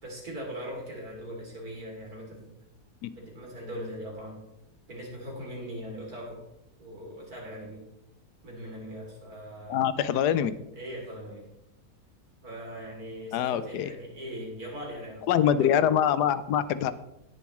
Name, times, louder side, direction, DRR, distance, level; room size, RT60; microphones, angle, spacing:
voice 1, 0.0-2.5 3.1-4.4 4.9-6.4 6.8-7.8 8.4-9.8 10.7-11.5 12.4-15.9, equal, 65° right, -2 dB, 3.6 m, -40 dB
voice 2, 9.7-10.5 13.3-13.9 15.3-16.9, left 9 dB, 85° left, 14 dB, 1.2 m, -24 dB
18.0 x 7.0 x 3.1 m, 0.87 s
omnidirectional pair, 1.7 m